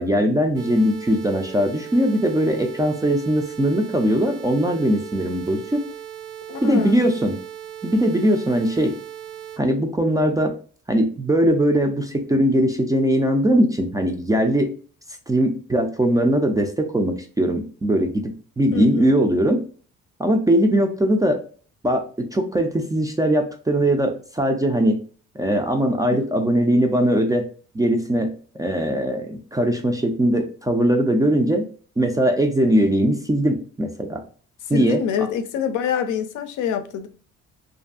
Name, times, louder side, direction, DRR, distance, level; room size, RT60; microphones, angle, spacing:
voice 1, 0.0-5.6 6.6-7.4 7.8-9.0 9.6-10.6 10.9-14.7 15.3-19.6 20.2-21.4 21.8-25.0 25.4-27.5 27.7-31.6 32.0-34.2 34.7-35.0, right 1 dB, 10° right, 0.3 m, -20 dB
sound 1, 0.5-9.6, right 10 dB, 75° right, 0.7 m, -38 dB
voice 2, 6.5-7.1 18.7-19.2 26.1-26.2 34.7-37.1, left 7 dB, 70° left, 0.5 m, -25 dB
2.5 x 2.5 x 2.3 m
cardioid pair, 95°, 31 cm